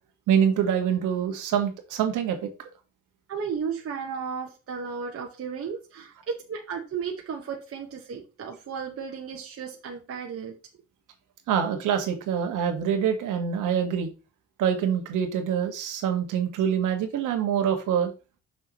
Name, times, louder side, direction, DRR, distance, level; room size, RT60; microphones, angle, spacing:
voice 1, 0.3-2.5 11.5-14.1 14.6-18.1, right 8 dB, 90° right, 5 dB, 1.6 m, -25 dB
voice 2, 3.3-10.5, right 6 dB, 50° right, 0 dB, 1.3 m, -34 dB
6.3 x 6.2 x 3.0 m, 0.31 s
cardioid pair, 90°, 30 cm